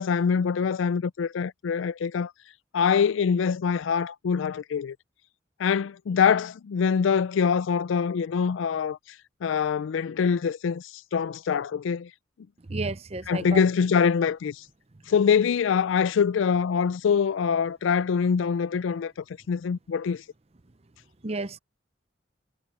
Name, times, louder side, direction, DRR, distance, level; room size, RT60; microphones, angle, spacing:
voice 1, 0.0-2.3 2.7-5.0 5.6-9.0 9.4-12.1 13.3-14.6 15.1-19.1 19.5-20.2, left 6 dB, 85° left, 0.4 m, -24 dB
voice 2, 12.7-13.6 21.2-21.6, right 3 dB, 35° right, 0.7 m, -31 dB
head